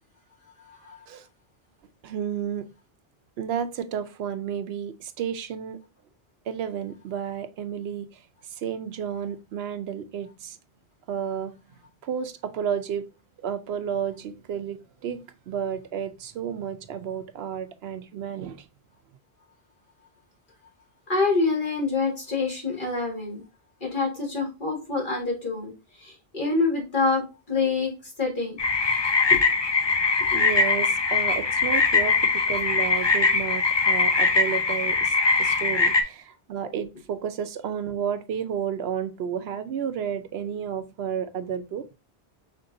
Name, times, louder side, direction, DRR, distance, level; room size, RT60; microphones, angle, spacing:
voice 1, 2.0-2.7 3.4-5.8 6.5-8.2 8.5-10.6 11.1-11.5 12.0-13.1 13.4-18.7 30.3-41.9, right 8 dB, 80° right, 9 dB, 0.8 m, -32 dB
voice 2, 21.1-23.4 23.8-25.7 26.0-27.9 28.2-28.6 29.3-29.4 30.3-30.4, left 3 dB, 55° left, -2 dB, 2.0 m, -26 dB
sound 1, 28.6-36.0, left 4 dB, 35° left, 0.5 m, -22 dB
5.4 x 3.7 x 2.6 m, 0.29 s
omnidirectional pair, 1.0 m